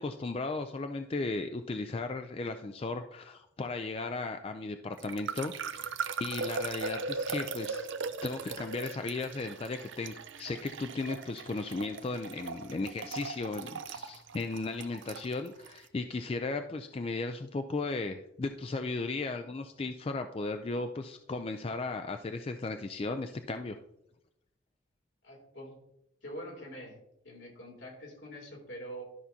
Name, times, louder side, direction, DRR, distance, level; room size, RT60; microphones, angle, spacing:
voice 1, 0.0-5.9 6.2-7.9 8.2-23.8, left 3 dB, 30° left, 7 dB, 0.3 m, -36 dB
sound 1, 5.0-15.8, right 4 dB, 80° right, 0.6 m, -39 dB
voice 2, 25.2-25.8 26.2-27.0 27.2-29.0, equal, 75° left, -1 dB, 2.8 m, -44 dB
12.5 x 5.8 x 2.7 m, 0.82 s
head